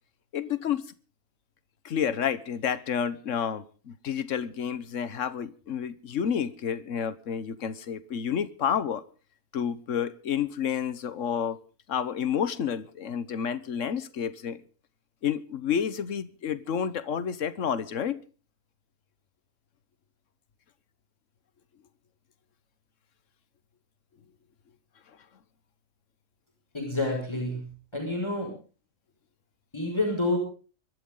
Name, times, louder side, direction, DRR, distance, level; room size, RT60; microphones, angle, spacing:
voice 1, 0.3-0.8 1.8-9.0 9.5-11.6 11.9-14.6 15.2-18.2, left 8 dB, 65° left, 15 dB, 1.4 m, -30 dB
voice 2, 26.7-27.7 27.9-28.5 29.7-30.4, left 2 dB, 20° left, 1 dB, 5.7 m, -28 dB
25.0 x 13.0 x 3.8 m, 0.38 s
omnidirectional pair, 1.4 m